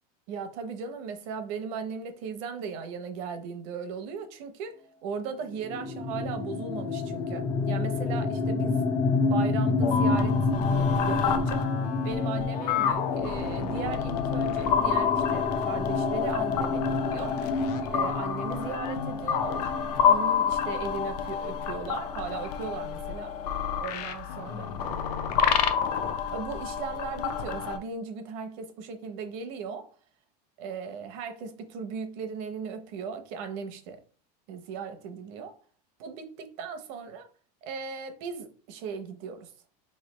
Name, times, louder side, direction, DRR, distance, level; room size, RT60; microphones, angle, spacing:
voice 1, 0.3-8.8 9.3-11.7 12.0-17.4 17.9-19.7 20.0-23.4 23.8-24.7 26.3-29.9 30.6-34.0 34.5-35.6 36.0-37.3 37.6-39.5, right 5 dB, 55° right, 0.7 m, -37 dB
sound 1, 5.6-21.3, left 4 dB, 15° left, 0.4 m, -29 dB
sound 2, 9.8-27.8, left 7 dB, 85° left, 0.6 m, -29 dB
4.3 x 3.2 x 3.1 m
supercardioid pair, 160°, 20 cm